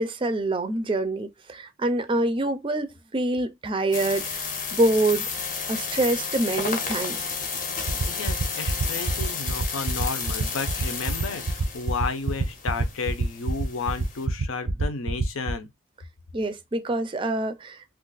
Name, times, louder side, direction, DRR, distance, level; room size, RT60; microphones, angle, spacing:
voice 1, 0.0-7.3 16.3-18.0, right 2 dB, 25° right, 0.4 m, -26 dB
sound 1, 3.9-14.3, left 5 dB, 40° left, 0.7 m, -32 dB
sound 2, 7.9-15.5, right 4 dB, 90° right, 0.6 m, -26 dB
voice 2, 8.0-15.7, left 4 dB, 85° left, 0.6 m, -32 dB
2.5 x 2.4 x 3.8 m
head